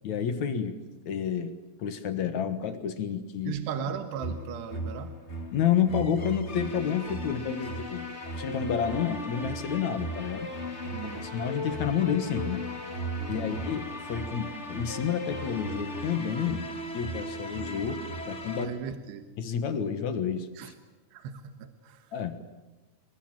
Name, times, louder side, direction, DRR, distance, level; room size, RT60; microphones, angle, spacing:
voice 1, 0.0-0.8 1.1-3.6 5.5-8.1 8.3-10.5 11.0-12.6 13.3-16.7 16.9-18.8 19.4-20.7 22.1-22.4, left 8 dB, 60° left, 10 dB, 2.2 m, -30 dB
voice 2, 3.5-5.2 10.9-11.3 13.4-13.6 18.6-19.2 20.6-20.7 21.1-22.1, right 8 dB, 85° right, 8 dB, 3.5 m, -37 dB
sound 1, 4.2-18.6, equal, 25° left, 1.8 m, -36 dB
25.5 x 22.0 x 9.0 m, 1.1 s
omnidirectional pair, 4.7 m